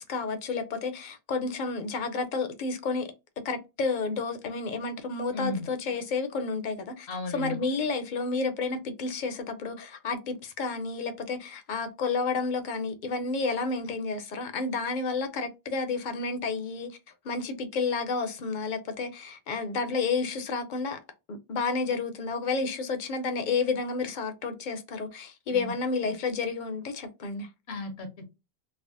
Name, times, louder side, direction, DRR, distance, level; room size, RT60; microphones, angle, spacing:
voice 1, 0.1-3.1 3.4-7.1 7.3-17.0 17.2-21.0 21.3-27.5, left 4 dB, 55° left, 0.6 m, -31 dB
voice 2, 5.3-5.6 7.1-7.6 25.5-25.7 27.7-28.2, left 3 dB, 85° left, 1.1 m, -34 dB
3.4 x 2.0 x 2.5 m
omnidirectional pair, 1.1 m